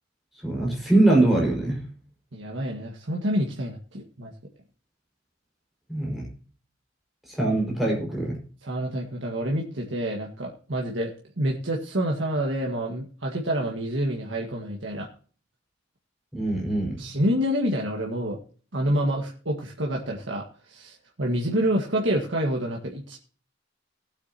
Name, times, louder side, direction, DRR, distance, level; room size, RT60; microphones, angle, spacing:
voice 1, 0.4-1.8 5.9-6.3 7.3-8.4 16.3-17.0, right 2 dB, ahead, -3 dB, 5.4 m, -22 dB
voice 2, 2.3-4.3 8.6-15.1 17.0-18.4 18.7-23.2, equal, 80° right, -1 dB, 1.8 m, -28 dB
19.0 x 8.5 x 2.9 m, 0.42 s
head